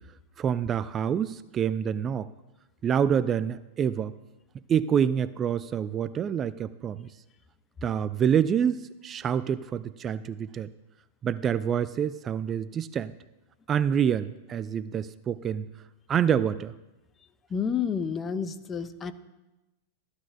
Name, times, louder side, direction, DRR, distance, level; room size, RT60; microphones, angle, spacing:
voice 1, 0.4-2.3 2.8-4.2 4.7-7.1 7.8-10.7 11.2-13.1 13.7-15.7 16.1-16.7, right 8 dB, 30° right, 15 dB, 0.3 m, -27 dB
voice 2, 17.5-19.1, left 7 dB, 25° left, 11 dB, 0.7 m, -30 dB
14.5 x 11.0 x 2.7 m, 1.0 s
figure-of-eight pair, 95°, 0 cm